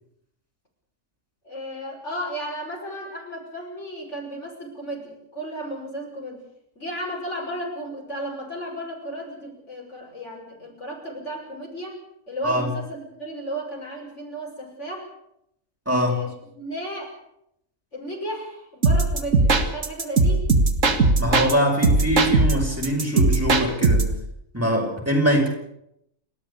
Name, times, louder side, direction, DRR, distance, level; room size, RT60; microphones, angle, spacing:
voice 1, 1.4-6.4 6.8-12.0 12.3-15.1 16.0-17.2 17.9-20.5, right 1 dB, 60° left, 0 dB, 6.8 m, -34 dB
voice 2, 15.9-16.2 21.2-24.1 24.5-25.5, equal, 10° right, 0 dB, 5.3 m, -22 dB
sound 1, 18.8-21.5 21.8-24.2, right 3 dB, 75° right, 2.2 m, -19 dB
29.5 x 13.0 x 8.4 m, 0.76 s
omnidirectional pair, 1.3 m